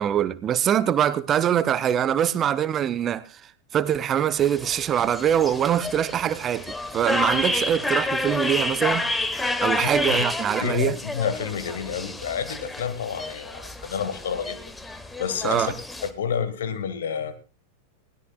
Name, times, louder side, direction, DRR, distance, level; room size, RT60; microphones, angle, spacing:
voice 1, 0.0-3.4 3.7-9.0 9.6-11.0 15.4-15.7, right 10 dB, 30° right, 0.7 m, -23 dB
sound 1, 4.4-16.1, left 2 dB, 10° left, 1.2 m, -29 dB
voice 2, 9.7-10.2 10.6-14.6 15.2-15.7 16.0-17.3, left 7 dB, 60° left, 1.7 m, -29 dB
21.0 x 16.5 x 2.4 m
figure-of-eight pair, 90°, 0 cm